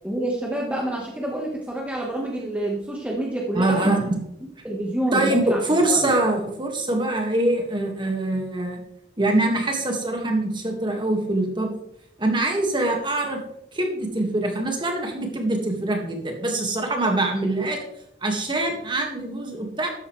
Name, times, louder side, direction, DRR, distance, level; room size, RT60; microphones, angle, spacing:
voice 1, 0.0-3.9 4.6-6.1, right 1 dB, 5° right, -2 dB, 1.3 m, -28 dB
voice 2, 3.5-4.2 5.1-8.8 9.2-11.7 12.2-13.4 13.7-17.8 18.2-19.9, right 2 dB, 25° right, 2 dB, 1.9 m, -24 dB
12.5 x 9.1 x 3.3 m, 0.77 s
head